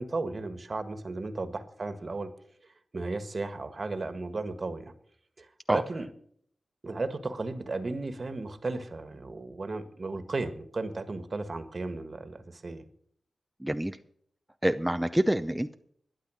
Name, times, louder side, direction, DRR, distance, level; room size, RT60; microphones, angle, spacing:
voice 1, 0.0-2.3 2.9-4.9 5.4-6.1 6.8-12.8, right 3 dB, 50° right, 10 dB, 1.5 m, -35 dB
voice 2, 13.6-14.0 14.6-15.7, right 1 dB, 10° right, 8 dB, 0.6 m, -27 dB
12.0 x 10.0 x 6.3 m, 0.64 s
cardioid pair, 55°, 0 cm